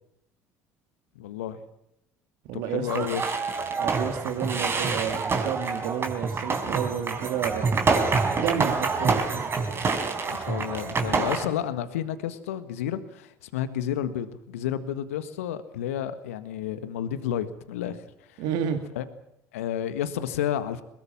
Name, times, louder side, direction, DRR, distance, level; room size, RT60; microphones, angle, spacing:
voice 1, 1.2-1.6 2.5-3.4 10.3-18.4 18.9-19.1 19.5-20.8, left 10 dB, 75° left, 12 dB, 1.6 m, -31 dB
voice 2, 2.5-3.1 3.8-7.7 8.4-9.4 18.4-18.8, right 8 dB, 65° right, 6 dB, 2.3 m, -30 dB
sound 1, 2.9-11.5, right 4 dB, 30° right, 4.3 m, -27 dB
22.5 x 21.0 x 7.5 m, 0.78 s
figure-of-eight pair, 60°, 8 cm